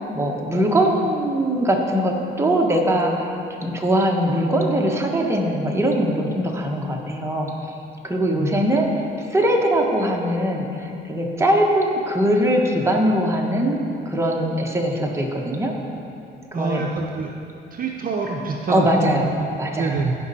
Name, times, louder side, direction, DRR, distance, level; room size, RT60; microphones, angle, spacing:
voice 1, 0.1-7.5 8.0-8.9 9.2-15.7 16.5-16.8 18.7-20.0, right 1 dB, 15° right, 0 dB, 1.3 m, -21 dB
voice 2, 8.3-8.6 16.5-17.3 17.7-20.2, right 4 dB, 45° right, 0 dB, 0.7 m, -26 dB
15.0 x 5.3 x 4.2 m, 2.7 s
cardioid pair, 90°, 20 cm